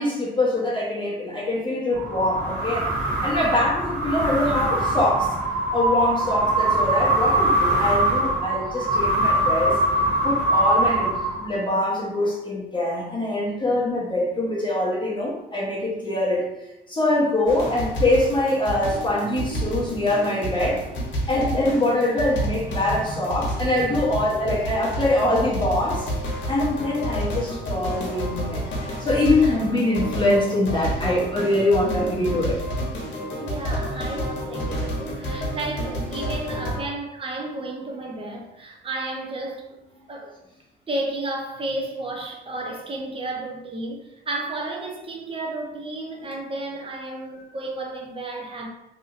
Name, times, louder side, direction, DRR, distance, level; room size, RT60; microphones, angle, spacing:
voice 1, 0.0-2.9 3.2-5.4 5.7-9.8 10.2-16.5 16.9-20.9 21.3-26.1 26.5-32.6, left 1 dB, 25° left, 0.8 m, -23 dB
sound 1, 1.9-11.7, right 1 dB, 50° right, 1.0 m, -22 dB
sound 2, 17.5-36.8, equal, 75° left, 0.9 m, -30 dB
voice 2, 22.7-23.2 23.6-23.9 24.7-25.1 33.4-39.8 40.1-40.3 40.9-48.7, right 2 dB, 25° right, 0.7 m, -32 dB
2.8 x 2.7 x 2.5 m
cardioid pair, 90°, 20 cm